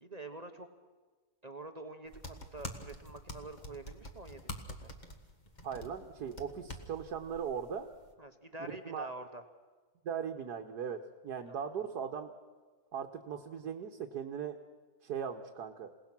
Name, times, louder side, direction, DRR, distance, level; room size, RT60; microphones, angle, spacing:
voice 1, 0.0-0.7 1.4-4.9 8.2-9.4 11.5-11.6, right 2 dB, 30° right, 6 dB, 1.0 m, -47 dB
sound 1, 2.1-8.1, left 1 dB, 30° left, 1.6 m, -47 dB
voice 2, 5.6-7.9 8.6-9.1 10.0-12.3 12.9-14.6 15.0-15.9, right 7 dB, 90° right, 4 dB, 1.6 m, -39 dB
27.5 x 18.0 x 6.0 m, 1.4 s
omnidirectional pair, 1.7 m